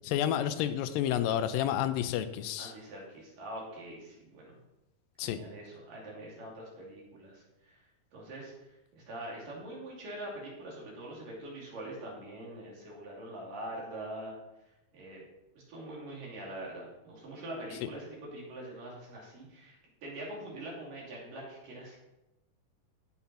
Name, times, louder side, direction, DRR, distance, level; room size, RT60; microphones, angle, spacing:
voice 1, 0.0-2.7 5.2-5.4 17.8-17.9, left 10 dB, 85° left, 11 dB, 2.4 m, -30 dB
voice 2, 2.6-4.6 5.2-7.8 8.1-8.5 8.9-14.3 14.9-15.2 15.5-22.0, right 1 dB, 70° right, -4 dB, 4.7 m, -44 dB
17.0 x 5.7 x 4.3 m, 0.96 s
omnidirectional pair, 3.9 m